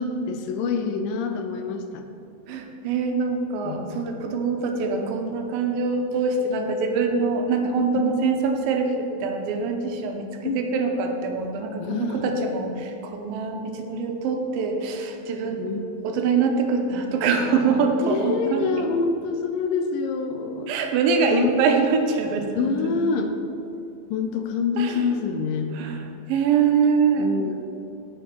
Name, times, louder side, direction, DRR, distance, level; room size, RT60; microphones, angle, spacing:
voice 1, 0.0-2.0 3.6-4.2 7.9-8.2 10.4-10.6 11.8-12.3 15.6-15.9 18.0-20.7 21.3-21.5 22.5-23.3 24.1-25.8 27.2-27.6, left 5 dB, 80° left, 6 dB, 2.2 m, -26 dB
voice 2, 2.5-15.7 16.0-18.8 20.7-23.0 24.8-25.1 25.7-27.5, right 5 dB, 80° right, 4 dB, 2.6 m, -24 dB
9.9 x 7.5 x 4.6 m, 2.7 s
omnidirectional pair, 4.1 m